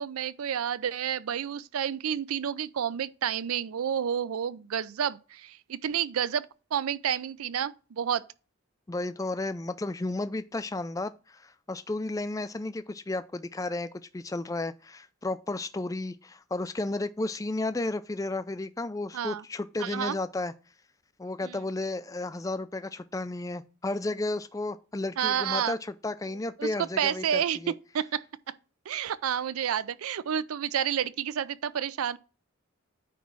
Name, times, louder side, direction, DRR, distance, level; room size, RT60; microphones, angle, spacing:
voice 1, 0.0-6.5 6.7-8.2 19.1-19.4 19.8-20.2 21.4-21.6 25.2-25.7 26.6-28.2 28.9-32.2, right 8 dB, 85° right, 0.4 m, -30 dB
voice 2, 8.9-13.9 14.1-20.5 21.2-27.7, left 2 dB, 15° left, 0.3 m, -33 dB
9.3 x 3.1 x 6.0 m
head